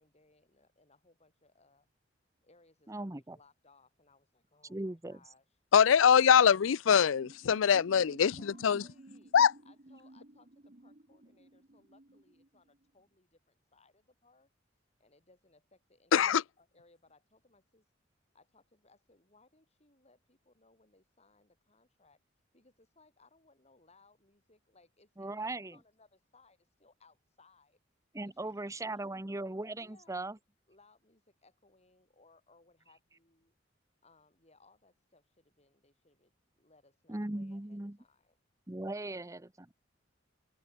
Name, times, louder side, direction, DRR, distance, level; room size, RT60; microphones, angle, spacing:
voice 1, 0.0-1.9 2.4-5.4 7.6-9.3 9.6-14.5 15.0-16.1 16.6-17.9 18.3-22.2 22.5-27.8 28.2-29.2 29.8-30.2 30.7-33.5 34.0-38.4 39.0-39.3, left 3 dB, 35° left, 7.5 m, -66 dB
voice 2, 2.9-3.4 4.6-5.2 25.2-25.8 28.1-30.4 37.1-38.0 38.7-39.7, right 2 dB, 15° right, 0.8 m, -39 dB
voice 3, 5.7-8.3 8.6-8.8 9.3-9.5 16.1-16.4, left 7 dB, 85° left, 0.4 m, -23 dB
sound 1, 7.2-12.8, right 1 dB, 45° right, 1.5 m, -55 dB
head